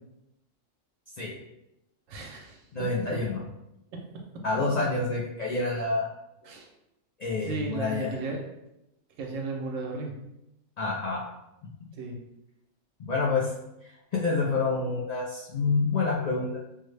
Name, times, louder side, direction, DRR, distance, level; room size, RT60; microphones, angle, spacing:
voice 1, 2.1-2.6 3.1-3.2 6.4-6.7 7.4-8.5 9.2-10.1 11.9-12.2, right 3 dB, 80° right, 0 dB, 1.1 m, -35 dB
voice 2, 2.7-3.4 4.4-6.1 7.2-8.1 10.8-11.2 13.0-13.5 14.1-16.5, left 3 dB, 80° left, -4 dB, 0.3 m, -27 dB
3.7 x 2.0 x 3.2 m, 0.87 s
omnidirectional pair, 1.3 m